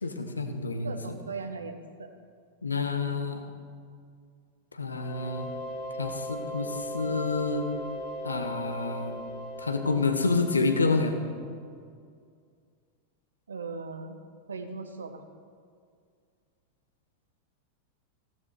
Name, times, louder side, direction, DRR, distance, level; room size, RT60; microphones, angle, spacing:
voice 1, 0.0-0.9 2.6-3.4 4.7-5.5 6.0-7.7 8.2-9.1 9.6-11.2, left 3 dB, 75° left, 7 dB, 1.3 m, -28 dB
voice 2, 0.8-2.1 13.5-14.2 14.5-15.2, right 4 dB, 70° right, 7 dB, 1.3 m, -38 dB
sound 1, 4.9-11.5, equal, 45° left, 2.2 m, -39 dB
16.0 x 13.5 x 4.8 m, 2.2 s
figure-of-eight pair, 90°, 0 cm